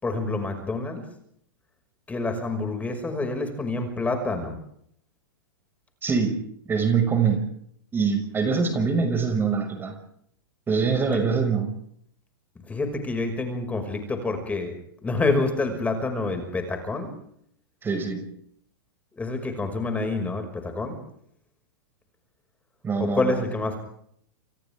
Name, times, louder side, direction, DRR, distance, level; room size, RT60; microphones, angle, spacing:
voice 1, 0.0-1.1 2.1-4.6 12.6-14.8 15.0-17.1 19.1-21.0 23.0-23.8, left 3 dB, 10° left, 6 dB, 5.9 m, -27 dB
voice 2, 6.0-6.4 6.7-7.5 7.9-10.0 10.7-11.7 17.8-18.3 22.8-23.4, right 5 dB, 15° right, 6 dB, 6.0 m, -24 dB
29.5 x 29.0 x 3.7 m, 0.67 s
hypercardioid pair, 130°, 13 cm